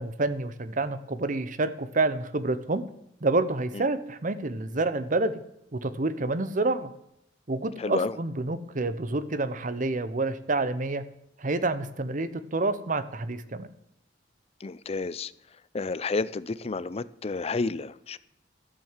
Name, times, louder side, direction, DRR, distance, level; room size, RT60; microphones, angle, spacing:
voice 1, 0.0-2.8 3.2-5.4 5.7-6.9 7.5-11.0 11.4-13.7, right 2 dB, 45° right, 0.8 m, -28 dB
voice 2, 7.8-8.2 14.6-15.3 15.7-18.2, left 3 dB, 35° left, 0.5 m, -30 dB
13.0 x 7.7 x 7.4 m
head